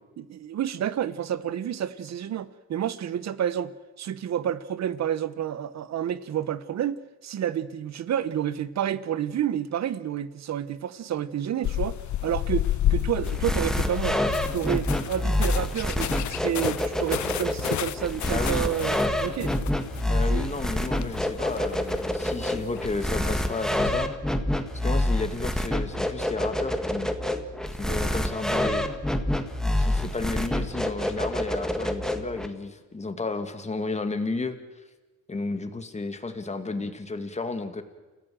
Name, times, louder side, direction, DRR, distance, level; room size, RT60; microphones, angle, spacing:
voice 1, 0.2-3.7 4.0-14.2 14.5-19.5 20.3-20.5, right 10 dB, 60° right, 1.1 m, -29 dB
sound 1, 11.6-24.1, left 13 dB, 70° left, 0.8 m, -32 dB
sound 2, 13.3-32.5, left 1 dB, ahead, 1.8 m, -27 dB
voice 2, 18.3-18.7 20.1-24.1 24.8-27.1 27.8-28.8 29.6-34.6 35.3-37.8, left 3 dB, 20° left, 2.2 m, -32 dB
28.5 x 15.5 x 7.8 m
cardioid pair, 90°, 30 cm